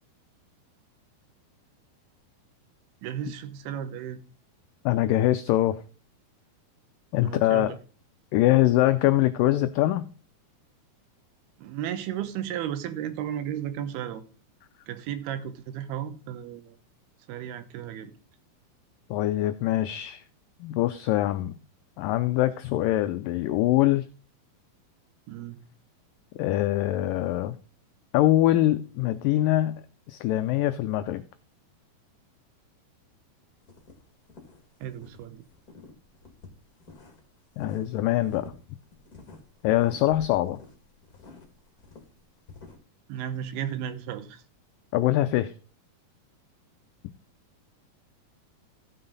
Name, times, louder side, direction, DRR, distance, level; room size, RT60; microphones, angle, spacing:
voice 1, 3.0-4.2 7.2-7.8 11.6-14.2 14.9-16.8 17.3-18.1 25.3-25.6 34.8-35.4 43.1-44.4, right 10 dB, 80° right, 2.9 m, -34 dB
voice 2, 4.9-5.8 7.1-7.7 8.3-10.1 19.1-20.2 20.6-21.6 22.0-24.0 26.4-27.6 28.1-31.2 37.6-38.5 39.6-40.6 44.9-45.5, left 14 dB, 85° left, 1.9 m, -23 dB
sound 1, 33.6-35.2 35.5-37.3 37.5-42.8, left 4 dB, 35° left, 1.7 m, -49 dB
15.5 x 5.7 x 3.9 m
omnidirectional pair, 4.5 m